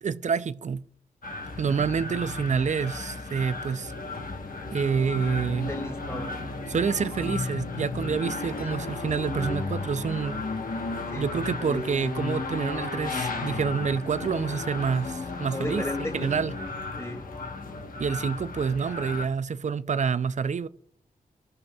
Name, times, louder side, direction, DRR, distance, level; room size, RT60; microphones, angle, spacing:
voice 1, 0.0-0.8 1.6-3.9 4.7-5.7 6.7-10.4 11.2-15.9 16.1-16.5 18.0-20.7, right 6 dB, 55° right, 0.4 m, -28 dB
sound 1, 1.2-19.3, left 3 dB, 70° left, 1.2 m, -34 dB
voice 2, 5.7-6.5 11.1-11.8 15.5-16.3 17.0-17.2, left 1 dB, 20° left, 2.5 m, -36 dB
17.0 x 5.7 x 2.3 m
cardioid pair, 55°, 15 cm